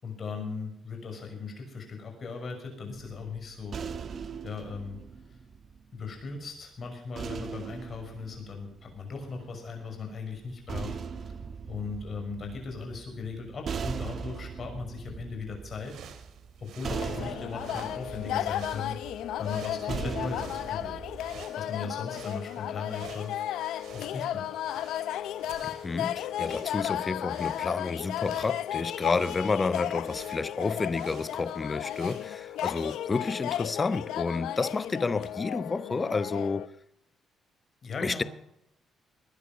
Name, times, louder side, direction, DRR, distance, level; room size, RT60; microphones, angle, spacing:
voice 1, 0.0-3.8 4.4-5.0 5.3-5.4 5.9-11.4 11.7-16.0 16.6-19.0 19.4-21.0 21.6-23.4 23.9-24.5 37.8-38.3, left 4 dB, 45° left, 6.3 m, -38 dB
sound 1, 2.9-6.2 7.2-9.4 10.4-21.5, right 6 dB, 50° right, 1.5 m, -40 dB
sound 2, 15.7-33.0, right 8 dB, 80° right, 2.3 m, -52 dB
sound 3, 16.9-36.7, left 12 dB, 85° left, 0.6 m, -34 dB
voice 2, 25.6-36.7 38.0-38.2, left 4 dB, 25° left, 0.7 m, -30 dB
20.0 x 11.0 x 6.2 m
cardioid pair, 105°, 0 cm